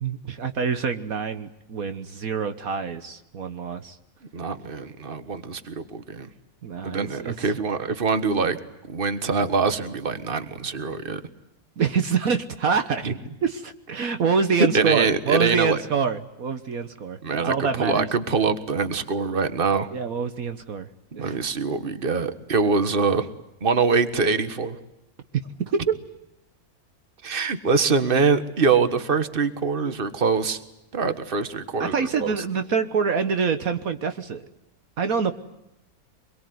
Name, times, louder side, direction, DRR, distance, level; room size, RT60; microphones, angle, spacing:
voice 1, 0.0-4.0 6.6-7.5 11.8-13.1 13.4-17.2 17.4-18.1 19.9-20.9 21.1-21.4 25.3-25.8 31.8-34.5 35.0-35.3, right 5 dB, 65° right, 9 dB, 1.6 m, -26 dB
voice 2, 4.3-6.3 6.8-8.6 8.9-11.2 13.0-13.1 14.7-15.8 17.2-19.9 21.2-23.3 23.6-24.8 27.2-30.6 30.9-31.9 32.2-32.3, right 5 dB, 35° right, 11 dB, 1.7 m, -24 dB
25.5 x 22.5 x 9.5 m, 0.88 s
omnidirectional pair, 1.6 m